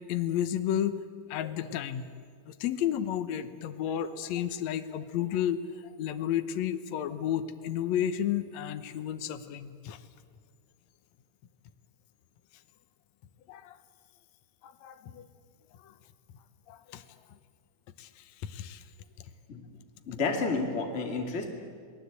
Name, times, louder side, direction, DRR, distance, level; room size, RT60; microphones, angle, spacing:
voice 1, 0.1-1.0 1.3-2.1 2.5-10.0 13.5-13.8 14.6-15.2 15.8-15.9 16.7-17.0 18.0-18.8 20.1-20.2, left 10 dB, 80° left, 9 dB, 1.5 m, -32 dB
voice 2, 20.1-21.5, left 4 dB, 20° left, 1 dB, 2.2 m, -30 dB
28.5 x 19.5 x 8.3 m, 2.1 s
omnidirectional pair, 4.5 m